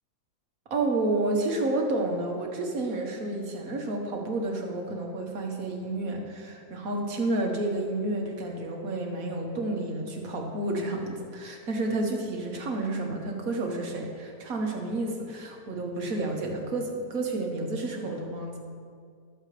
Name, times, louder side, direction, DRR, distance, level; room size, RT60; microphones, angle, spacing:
voice 1, 0.7-18.6, right 2 dB, 55° right, 1 dB, 1.9 m, -30 dB
21.5 x 7.4 x 3.3 m, 2.2 s
omnidirectional pair, 1.8 m